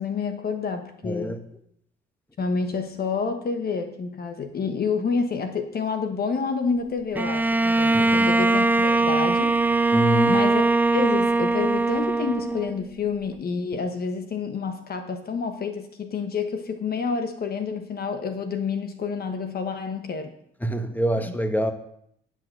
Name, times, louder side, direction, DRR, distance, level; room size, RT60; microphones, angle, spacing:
voice 1, 0.0-1.4 2.4-9.6 10.3-10.6 10.9-20.3 21.2-21.3, left 5 dB, 50° left, 7 dB, 1.1 m, -28 dB
voice 2, 1.0-1.4 7.9-8.3 9.9-10.4 20.6-21.7, equal, 10° left, 7 dB, 1.3 m, -26 dB
Bowed string instrument, 7.1-12.9, right 3 dB, 10° right, 0.3 m, -21 dB
10.5 x 6.4 x 6.6 m, 0.71 s
cardioid pair, 90°, 20 cm